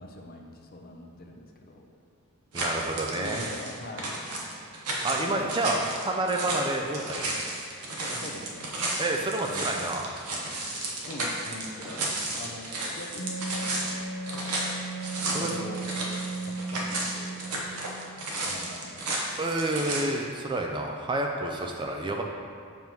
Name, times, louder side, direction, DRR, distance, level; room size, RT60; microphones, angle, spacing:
voice 1, 0.0-1.8 2.9-4.1 5.2-5.7 6.4-6.5 8.1-8.7 9.5-10.1 11.1-12.1 12.4-12.6 12.9-14.1 15.3-15.8 16.4-17.4 18.4-18.9, left 1 dB, 40° left, 2 dB, 0.6 m, -43 dB
voice 2, 2.5-3.5 4.7-7.3 9.0-10.1 15.2-15.5 19.4-22.2, right 2 dB, 20° right, 1 dB, 0.3 m, -29 dB
sound 1, 2.5-20.0, right 2 dB, 85° right, 1.0 m, -33 dB
Wind instrument woodwind instrument, 13.2-18.6, right 2 dB, 70° left, 0.9 m, -36 dB
7.3 x 3.0 x 5.3 m, 2.2 s
head